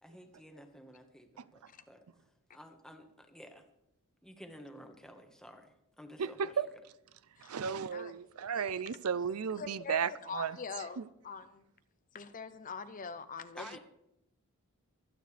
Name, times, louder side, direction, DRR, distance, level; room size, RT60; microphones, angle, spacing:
voice 1, 0.0-2.0 2.5-3.6 4.2-6.6 13.5-13.8, equal, 5° left, 5 dB, 1.4 m, -52 dB
voice 2, 6.2-6.7 7.4-10.6 11.0-11.1, right 6 dB, 80° right, 17 dB, 0.5 m, -34 dB
voice 3, 8.5-9.0 9.6-11.6 12.1-13.8, left 5 dB, 35° left, 11 dB, 0.7 m, -44 dB
24.5 x 9.1 x 3.4 m, 0.84 s
head